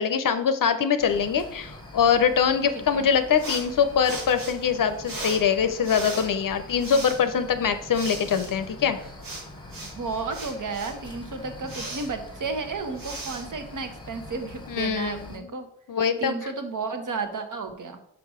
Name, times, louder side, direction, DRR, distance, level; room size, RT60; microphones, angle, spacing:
voice 1, 0.0-9.0 14.7-15.5 15.9-16.3, left 7 dB, 50° left, 9 dB, 0.7 m, -23 dB
sound 1, 1.0-15.4, left 1 dB, 10° left, 1.2 m, -44 dB
voice 2, 2.7-3.1 9.8-15.7 16.2-18.0, right 4 dB, 45° right, 7 dB, 1.1 m, -33 dB
sound 2, 3.4-14.3, right 2 dB, 85° right, 2.2 m, -39 dB
5.2 x 4.7 x 5.0 m, 0.73 s
cardioid pair, 65°, 43 cm